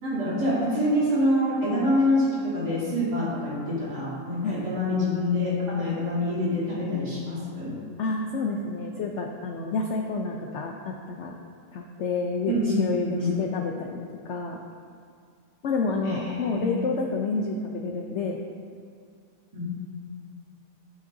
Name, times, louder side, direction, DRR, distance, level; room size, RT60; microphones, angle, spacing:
voice 1, 0.0-7.7 12.5-13.3 16.0-16.8 19.5-19.6, left 1 dB, 80° right, -10 dB, 3.3 m, -26 dB
voice 2, 8.0-11.3 11.7-14.6 15.6-18.4, left 3 dB, 60° left, 2 dB, 0.7 m, -29 dB
13.5 x 7.6 x 2.7 m, 2.2 s
omnidirectional pair, 1.8 m